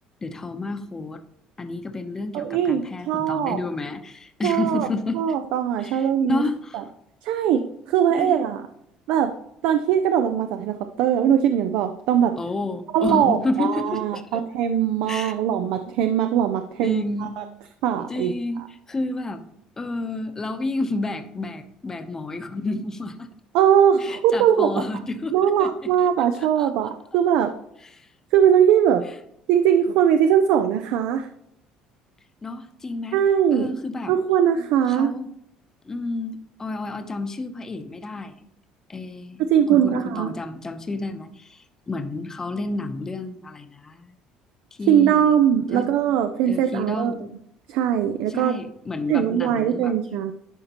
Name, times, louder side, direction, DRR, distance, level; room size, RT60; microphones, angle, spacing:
voice 1, 0.2-1.2 1.6-5.2 5.8-6.9 8.1-8.3 12.4-14.4 15.1-15.3 16.8-17.3 18.1-18.6 18.9-19.5 19.8-23.3 24.0-25.9 26.4-26.7 27.9-28.1 32.4-33.2 33.5-34.1 34.9-35.3 35.8-38.3 38.9-44.1 44.8-45.3 45.7-45.9 46.5-47.3 48.3-49.9, left 2 dB, 20° left, 7 dB, 0.8 m, -30 dB
voice 2, 2.3-3.6 4.4-4.9 5.1-6.4 6.7-6.8 7.2-8.6 9.1-9.3 9.6-12.4 12.9-17.4 17.8-18.7 23.5-24.8 25.3-27.5 28.3-29.1 29.5-31.3 33.1-33.7 34.1-35.1 39.4-40.3 44.9-47.2 47.7-48.6 49.1-50.3, right 9 dB, 75° right, 8 dB, 0.5 m, -21 dB
10.5 x 5.1 x 3.0 m, 0.76 s
cardioid pair, 120°, 3 cm